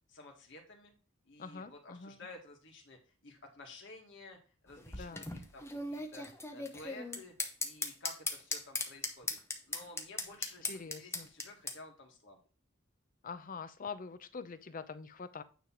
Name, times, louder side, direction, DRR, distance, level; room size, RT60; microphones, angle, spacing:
voice 1, 0.1-0.9 1.3-4.4 4.6-6.3 6.5-7.3 7.6-9.4 9.7-10.6 10.9-12.4, left 2 dB, 65° left, 2 dB, 1.9 m, -52 dB
voice 2, 1.4-2.2 5.0-5.3 10.6-11.3 13.2-15.4, left 5 dB, 45° left, 12 dB, 0.6 m, -44 dB
sound 1, 4.7-11.7, left 3 dB, 15° left, 0.9 m, -38 dB
9.2 x 3.4 x 5.9 m, 0.37 s
head